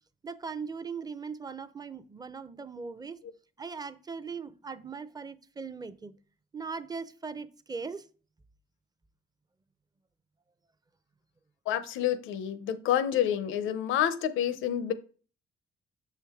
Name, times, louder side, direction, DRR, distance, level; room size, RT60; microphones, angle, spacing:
voice 1, 0.2-3.2 3.6-6.1 6.5-8.1, right 5 dB, 20° right, 0.5 m, -39 dB
voice 2, 11.7-14.9, left 10 dB, 85° left, 0.6 m, -28 dB
6.6 x 4.5 x 3.5 m
cardioid pair, 90°, 20 cm